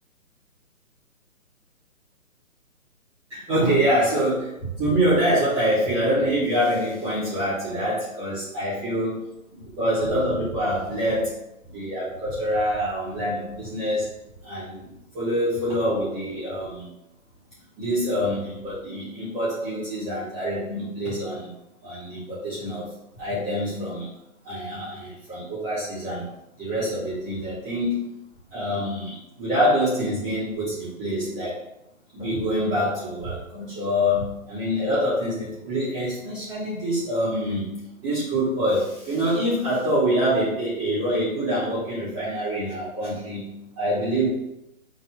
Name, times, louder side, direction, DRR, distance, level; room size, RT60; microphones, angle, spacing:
voice 1, 3.3-11.3 11.7-14.0 14.4-14.9 15.1-16.9 17.8-21.5 21.8-22.9 23.2-24.1 24.4-26.2 26.6-28.1 28.5-31.6 32.1-37.7 38.0-43.5 43.8-44.3, equal, 10° right, -18 dB, 1.9 m, -25 dB
5.3 x 4.2 x 5.8 m, 0.86 s
hypercardioid pair, 175°, 43 cm